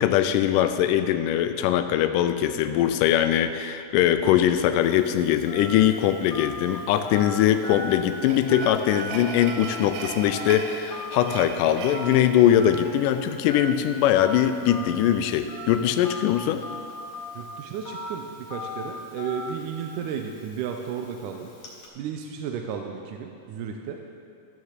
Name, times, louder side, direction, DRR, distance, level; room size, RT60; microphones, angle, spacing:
voice 1, 0.0-16.6, left 10 dB, 90° left, 9 dB, 2.1 m, -22 dB
Telephone, 4.8-21.9, left 1 dB, 60° left, 2.8 m, -39 dB
sound 1, 7.6-13.1, right 5 dB, 70° right, 2.0 m, -38 dB
voice 2, 17.3-21.5 22.0-24.0, right 7 dB, 85° right, 3 dB, 2.2 m, -33 dB
13.5 x 6.6 x 7.3 m, 2.4 s
omnidirectional pair, 3.7 m